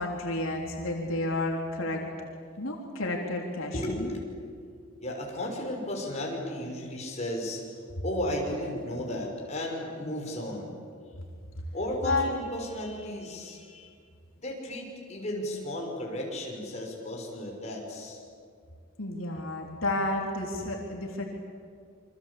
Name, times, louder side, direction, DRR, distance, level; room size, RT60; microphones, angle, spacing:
voice 1, 0.0-2.0 2.6-4.2 12.0-12.3 19.0-21.3, left 2 dB, 85° left, 0 dB, 3.6 m, -31 dB
voice 2, 3.7-7.6 8.0-10.8 11.7-13.9 14.3-18.2, left 1 dB, 35° left, -1 dB, 6.1 m, -34 dB
28.0 x 24.5 x 8.6 m, 2.2 s
head